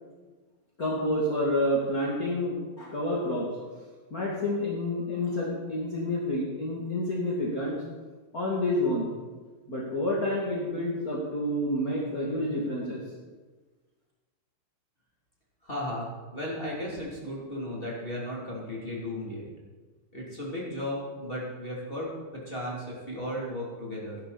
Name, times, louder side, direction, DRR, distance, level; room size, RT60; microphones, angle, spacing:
voice 1, 0.8-3.7 4.1-7.8 8.3-9.1 9.7-13.0, left 1 dB, 45° left, -5 dB, 1.1 m, -29 dB
voice 2, 15.6-19.5 20.1-24.2, left 1 dB, 15° left, -5 dB, 2.1 m, -35 dB
18.0 x 11.5 x 4.2 m, 1.3 s
omnidirectional pair, 5.6 m